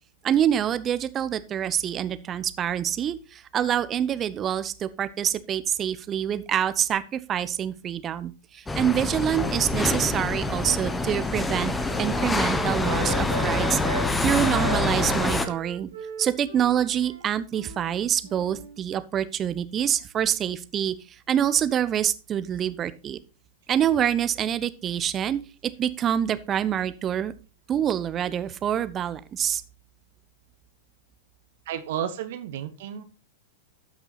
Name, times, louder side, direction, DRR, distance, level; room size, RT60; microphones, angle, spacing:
voice 1, 0.2-11.7 12.0-13.8 14.2-15.9 16.2-21.0 21.3-23.2 23.7-27.3 27.7-29.6, right 9 dB, 25° right, 14 dB, 0.8 m, -26 dB
sound 1, 8.7-15.5, left 2 dB, 10° left, 1.2 m, -26 dB
Wind instrument woodwind instrument, 10.2-14.1 14.4-17.9 18.2-18.8, right 3 dB, 80° right, 5.1 m, -37 dB
voice 2, 31.7-33.0, right 9 dB, 55° right, 9 dB, 1.2 m, -32 dB
13.5 x 6.1 x 4.1 m, 0.31 s
figure-of-eight pair, 95°, 0 cm